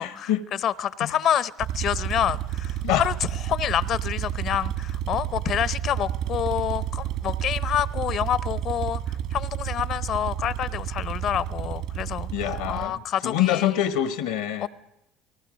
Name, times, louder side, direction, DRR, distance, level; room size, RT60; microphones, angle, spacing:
voice 1, 0.0-0.4 1.0-1.1 2.8-3.0 12.3-14.7, left 11 dB, 80° left, 1.3 m, -25 dB
voice 2, 0.6-3.1 3.5-12.3 12.7-13.7 14.6-14.7, left 10 dB, 55° left, 0.7 m, -27 dB
sound 1, 1.6-12.9, right 11 dB, 70° right, 1.5 m, -30 dB
29.0 x 19.0 x 5.2 m
hypercardioid pair, 70°, 0 cm